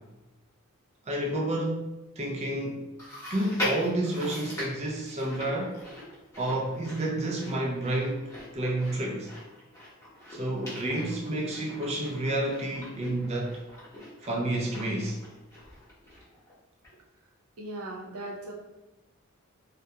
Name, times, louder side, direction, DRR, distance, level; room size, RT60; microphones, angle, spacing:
voice 1, 1.1-2.9 3.3-5.8 6.4-9.3 10.3-13.6 14.2-15.2, right 1 dB, 30° right, -1 dB, 0.4 m, -30 dB
Chewing mastication, 3.0-16.5 16.8-16.9 17.8-17.9, left 1 dB, 15° left, 0.8 m, -41 dB
voice 2, 17.6-18.5, right 1 dB, 85° right, -1 dB, 0.6 m, -38 dB
2.3 x 2.1 x 2.7 m, 0.99 s
head